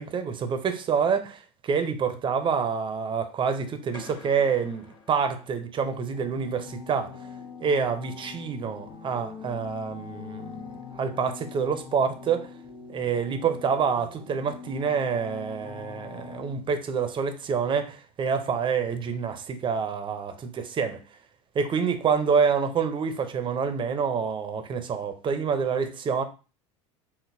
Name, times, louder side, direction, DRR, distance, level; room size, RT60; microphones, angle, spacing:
voice 1, 0.0-7.2 7.6-10.6 10.9-12.5 12.9-21.0 21.5-26.2, right 6 dB, 30° right, 0.5 m, -27 dB
sound 1, 3.9-6.0, left 4 dB, 30° left, 1.2 m, -48 dB
sound 2, 6.1-16.5, left 5 dB, 75° left, 1.3 m, -43 dB
3.8 x 2.1 x 2.5 m
supercardioid pair, 95°, 16 cm